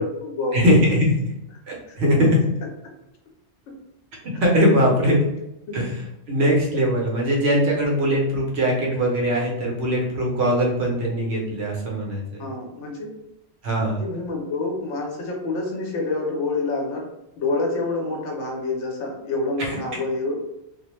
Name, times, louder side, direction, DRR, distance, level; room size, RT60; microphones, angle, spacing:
voice 1, 0.0-0.6 5.7-5.8 12.4-13.1 14.0-17.1 17.4-20.4, left 3 dB, 80° left, 0 dB, 0.9 m, -27 dB
voice 2, 0.5-1.3 1.7-2.4 4.2-5.2 5.7-12.4 13.6-14.0 19.6-19.8, equal, 65° right, -2 dB, 0.9 m, -21 dB
2.4 x 2.1 x 2.9 m, 0.87 s
omnidirectional pair, 1.2 m